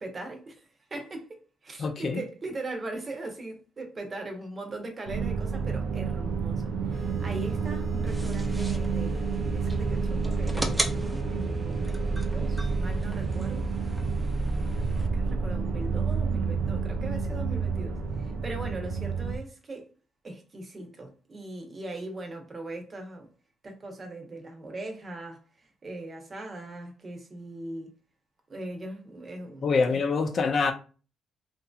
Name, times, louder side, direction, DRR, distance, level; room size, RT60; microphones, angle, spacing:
voice 1, 0.0-13.7 14.7-19.9 20.2-23.3 23.6-27.9 28.5-30.0, right 2 dB, 35° right, 0.9 m, -40 dB
voice 2, 1.8-2.2 29.6-30.7, left 4 dB, 50° left, 0.5 m, -25 dB
sound 1, 5.1-19.4, right 4 dB, 85° right, 0.5 m, -29 dB
sound 2, 6.9-14.6, right 1 dB, 60° right, 1.1 m, -44 dB
sound 3, 8.1-15.1, right 1 dB, 10° right, 0.5 m, -37 dB
2.8 x 2.6 x 2.4 m
cardioid pair, 90°, 0 cm